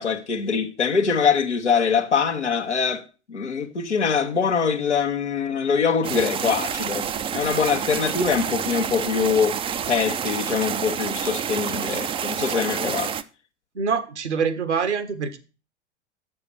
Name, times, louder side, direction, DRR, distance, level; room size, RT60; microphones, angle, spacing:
voice 1, 0.0-3.0 3.3-9.6 9.9-13.1, left 6 dB, 85° left, 1.3 m, -23 dB
sound 1, 6.0-13.2, right 8 dB, 15° right, 0.4 m, -28 dB
voice 2, 13.7-15.4, right 6 dB, 80° right, 1.4 m, -25 dB
7.0 x 6.9 x 7.0 m
figure-of-eight pair, 90°, 34 cm